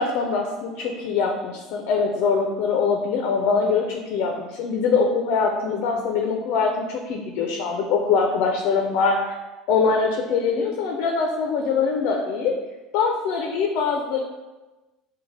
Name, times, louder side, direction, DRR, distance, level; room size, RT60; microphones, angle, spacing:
voice 1, 0.0-9.3 9.7-12.6 12.9-14.2, left 5 dB, 65° left, 2 dB, 0.5 m, -23 dB
6.1 x 2.2 x 3.3 m, 1.1 s
cardioid pair, 145°, 0 cm